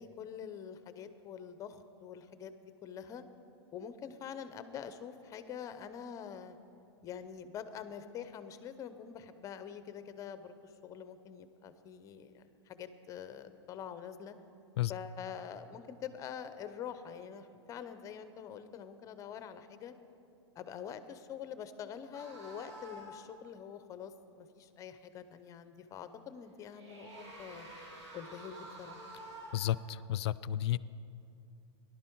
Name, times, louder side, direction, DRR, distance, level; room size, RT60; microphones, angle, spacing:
voice 1, 0.0-3.2 3.7-6.6 7.0-14.4 14.9-19.9 20.5-27.7 28.1-29.0, left 8 dB, 20° left, 11 dB, 0.6 m, -45 dB
sound 1, 22.1-23.3 26.5-29.8, right 1 dB, 90° right, 4.0 m, -49 dB
voice 2, 29.5-30.8, left 12 dB, 65° left, 18 dB, 0.4 m, -32 dB
17.5 x 11.5 x 4.6 m, 2.7 s
hypercardioid pair, 145°, 15 cm